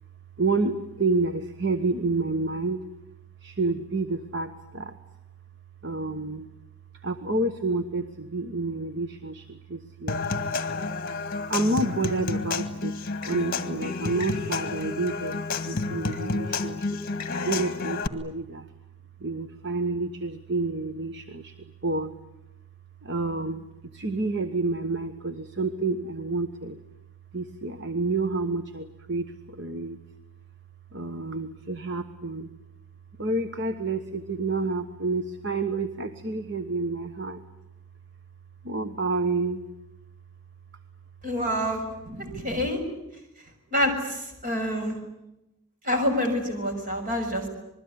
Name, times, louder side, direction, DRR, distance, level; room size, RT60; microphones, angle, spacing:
voice 1, 0.4-2.8 3.4-4.9 5.8-6.4 7.0-10.2 11.5-12.9 13.2-15.3 15.6-16.9 17.4-18.7 19.2-21.5 21.8-22.1 23.0-23.6 23.9-26.8 27.3-29.3 29.6-30.0 30.9-32.5 33.2-37.4 38.6-39.6 42.1-42.7, right 3 dB, 50° right, 9 dB, 1.3 m, -29 dB
Human voice / Acoustic guitar / Percussion, 10.1-18.1, left 3 dB, 40° left, 1.8 m, -30 dB
voice 2, 41.2-41.8 42.4-42.8 43.7-43.9 44.4-45.0 45.9-47.5, equal, 35° right, 4 dB, 6.4 m, -26 dB
27.0 x 21.5 x 9.8 m, 0.91 s
head